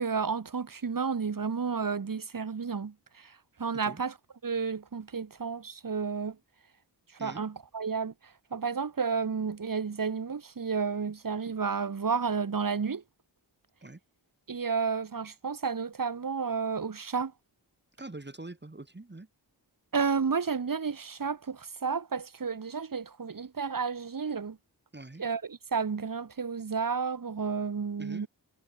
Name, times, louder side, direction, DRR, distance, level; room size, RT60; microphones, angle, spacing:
voice 1, 0.0-4.1 4.4-6.4 7.2-13.0 14.5-17.3 19.9-24.6 25.2-28.3, right 5 dB, 50° right, 1.3 m, -31 dB
voice 2, 18.0-19.3 24.9-25.2 28.0-28.3, right 2 dB, 25° right, 2.0 m, -44 dB
wide cardioid pair, 55°, 43 cm